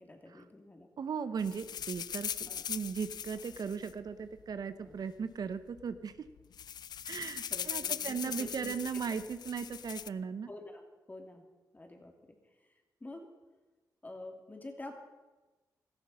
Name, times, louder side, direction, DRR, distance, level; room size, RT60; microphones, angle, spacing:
voice 1, 0.0-0.9 2.5-2.6 4.8-4.9 7.5-9.1 10.5-11.4 11.7-12.4 13.0-13.3 14.0-14.9, left 2 dB, 25° left, 3 dB, 2.9 m, -48 dB
voice 2, 1.0-6.1 7.0-10.5, right 6 dB, 65° right, 11 dB, 0.9 m, -37 dB
sound 1, 1.4-4.6 5.4-5.5 5.8-6.0 6.3-10.1, left 8 dB, 70° left, 0.4 m, -40 dB
17.0 x 14.0 x 5.7 m, 1.2 s
cardioid pair, 90°, 7 cm